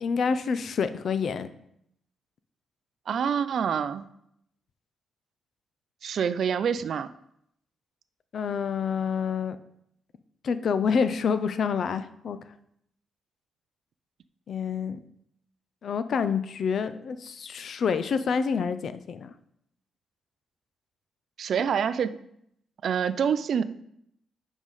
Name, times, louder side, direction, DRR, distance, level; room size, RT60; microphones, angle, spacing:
voice 1, 0.0-1.5 8.3-9.6 10.4-12.4 14.5-15.0 15.8-19.3, left 6 dB, 60° left, 12 dB, 0.4 m, -27 dB
voice 2, 3.1-4.1 6.0-7.1 21.4-22.2 22.8-23.6, right 7 dB, 65° right, 14 dB, 0.3 m, -26 dB
7.3 x 5.3 x 3.2 m, 0.75 s
cardioid pair, 80°, 0 cm